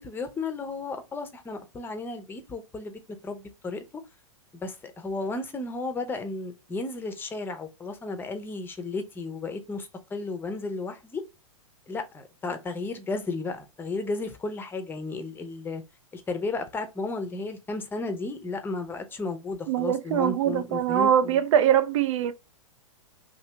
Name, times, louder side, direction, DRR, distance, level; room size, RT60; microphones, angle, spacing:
voice 1, 0.0-2.9 3.2-3.8 4.5-11.2 11.9-15.8 16.1-21.4, left 3 dB, 10° left, 0.6 m, -33 dB
voice 2, 19.7-22.3, right 9 dB, 65° right, 0.4 m, -23 dB
2.7 x 2.7 x 3.3 m
hypercardioid pair, 115°, 17 cm